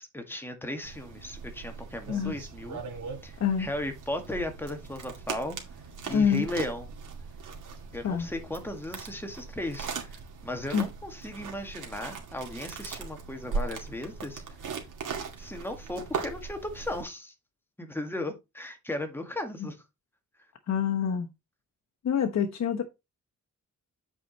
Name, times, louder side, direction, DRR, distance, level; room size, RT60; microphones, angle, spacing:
voice 1, 0.0-2.8 3.2-5.6 6.1-6.9 7.9-14.8 15.4-17.3 17.8-19.8, left 1 dB, 5° left, 1.8 m, -36 dB
sound 1, 0.8-17.0, right 5 dB, 85° right, 2.3 m, -39 dB
voice 2, 6.1-6.4 8.0-8.3 10.7-10.8 19.6-19.7 20.7-21.3 22.0-22.8, left 7 dB, 65° left, 1.2 m, -26 dB
8.4 x 4.9 x 4.2 m
wide cardioid pair, 130°, 30 cm